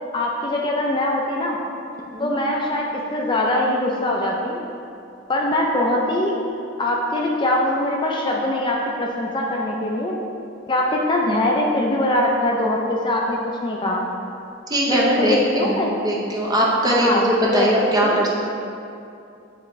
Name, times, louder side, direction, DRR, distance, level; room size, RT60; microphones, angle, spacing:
voice 1, 0.1-1.6 2.2-4.6 5.3-6.4 6.8-10.2 10.7-14.1 14.9-15.9 16.9-17.7 18.0-18.3, left 1 dB, 25° left, -1 dB, 0.4 m, -22 dB
voice 2, 14.7-18.3, right 1 dB, 20° right, -3 dB, 0.8 m, -20 dB
9.1 x 3.4 x 3.1 m, 2.6 s
head